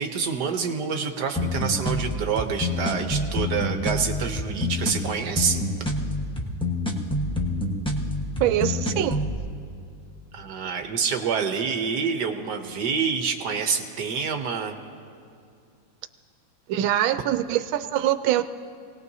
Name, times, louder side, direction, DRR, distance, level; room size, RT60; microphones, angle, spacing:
voice 1, 0.0-5.6 10.3-14.8, right 6 dB, 60° right, 5 dB, 1.4 m, -27 dB
sound 1, 1.4-9.4, left 1 dB, 5° left, 0.8 m, -27 dB
voice 2, 8.4-9.2 16.7-18.4, right 12 dB, 85° right, 11 dB, 1.4 m, -23 dB
27.0 x 18.5 x 2.7 m, 2.4 s
omnidirectional pair, 2.1 m